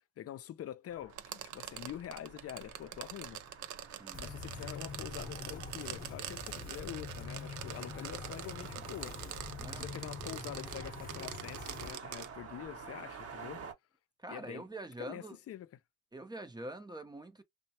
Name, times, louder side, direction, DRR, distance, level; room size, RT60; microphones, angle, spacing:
voice 1, 0.2-3.4 4.2-9.2 9.7-13.6 14.3-14.6 15.0-15.7, left 11 dB, 50° left, 0.5 m, -45 dB
sound 1, 0.9-13.7, right 5 dB, 50° right, 1.0 m, -51 dB
sound 2, 1.1-12.3, right 11 dB, 75° right, 0.6 m, -45 dB
sound 3, 4.1-11.9, left 5 dB, 30° left, 0.8 m, -45 dB
voice 2, 9.6-9.9 14.2-15.4 16.1-17.4, right 1 dB, 15° right, 0.6 m, -45 dB
3.0 x 2.1 x 2.8 m
cardioid pair, 90°, 30 cm